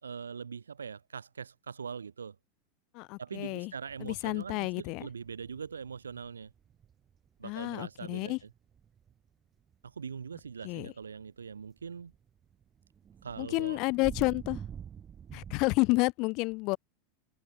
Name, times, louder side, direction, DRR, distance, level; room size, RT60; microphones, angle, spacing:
voice 1, 0.0-2.4 3.2-6.5 7.4-8.3 9.8-12.1 13.2-13.8, right 6 dB, 80° right, 4.5 m, -42 dB
voice 2, 2.9-3.7 4.0-5.1 7.4-8.4 10.6-10.9 13.4-14.6 15.3-16.8, left 25 dB, 50° left, 0.9 m, -30 dB
sound 1, 3.9-9.3 9.7-15.8, right 8 dB, 25° right, 2.6 m, -48 dB
figure-of-eight pair, 85°, 0 cm